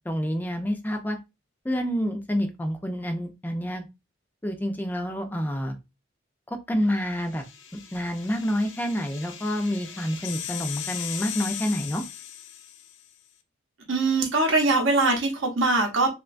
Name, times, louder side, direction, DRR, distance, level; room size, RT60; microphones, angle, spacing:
voice 1, 0.1-1.2 1.6-3.8 4.4-5.8 6.5-7.4 7.9-12.0, equal, 10° left, 0.3 m, -28 dB
sound 1, 7.1-13.1, left 10 dB, 65° left, 0.5 m, -38 dB
voice 2, 13.9-16.1, right 3 dB, 75° right, 0.7 m, -22 dB
3.0 x 2.2 x 2.4 m
head